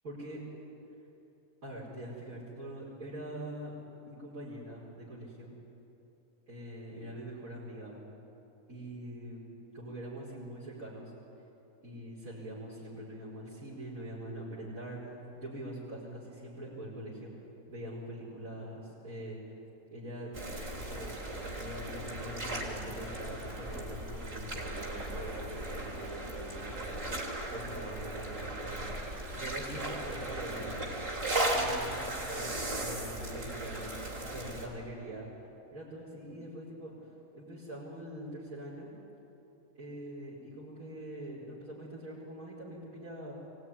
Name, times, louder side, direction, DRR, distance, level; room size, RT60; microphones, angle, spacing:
voice 1, 0.0-0.4 1.6-3.8 4.0-5.5 6.5-8.0 8.7-9.4 9.7-11.1 11.8-17.3 17.7-19.4 19.9-20.3 20.7-21.3 21.6-27.0 27.5-28.9 29.3-30.8 31.5-32.0 32.3-35.3 35.7-38.9 39.8-43.3, right 1 dB, 90° right, -9 dB, 5.6 m, -43 dB
sound 1, 20.3-34.7, right 1 dB, 65° right, 4.0 m, -37 dB
23.5 x 18.5 x 10.0 m, 2.9 s
omnidirectional pair, 1.4 m